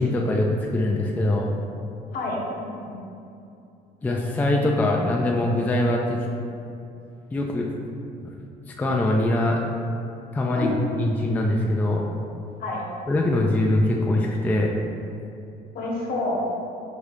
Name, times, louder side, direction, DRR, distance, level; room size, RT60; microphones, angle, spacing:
voice 1, 0.0-1.5 4.0-6.2 7.3-7.7 8.7-9.6 10.3-12.0 13.1-14.7, left 1 dB, 10° left, -1 dB, 0.3 m, -23 dB
voice 2, 2.1-2.9 10.5-10.7 12.6-12.8 15.7-16.4, left 2 dB, 60° left, -3 dB, 1.1 m, -28 dB
4.9 x 2.7 x 3.4 m, 2.7 s
cardioid pair, 110°, 17 cm